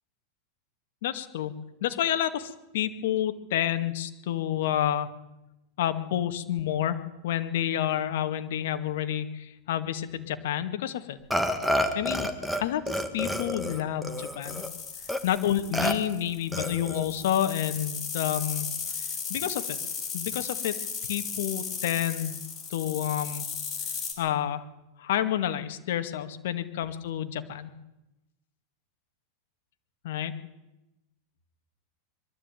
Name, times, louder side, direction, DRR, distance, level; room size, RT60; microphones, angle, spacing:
voice 1, 1.0-5.1 5.8-11.2 11.9-14.6 15.2-19.8 20.1-20.8 21.0-22.4 22.7-23.5 24.2-24.7 25.0-27.7 30.0-30.3, left 11 dB, 75° left, 8 dB, 2.0 m, -29 dB
Burping eructation, 11.3-12.6 12.9-14.7 15.1-15.2 15.7-15.9 16.5-17.1, equal, ahead, 1.7 m, -29 dB
sound 1, 14.4-24.1, left 6 dB, 25° left, 4.6 m, -36 dB
22.5 x 13.0 x 9.2 m, 0.96 s
supercardioid pair, 150°, 0 cm